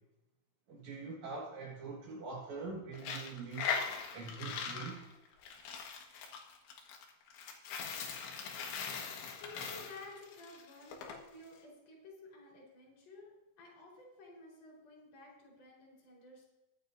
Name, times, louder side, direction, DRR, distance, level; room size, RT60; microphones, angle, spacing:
voice 1, 0.7-3.7 4.1-5.1 9.5-9.7, right 4 dB, 50° right, -4 dB, 2.4 m, -44 dB
Coin (dropping), 2.9-11.2, left 6 dB, 70° left, 3.7 m, -41 dB
voice 2, 9.3-16.4, left 2 dB, 35° left, -4 dB, 5.1 m, -54 dB
23.0 x 9.2 x 2.7 m, 1.0 s
omnidirectional pair, 5.4 m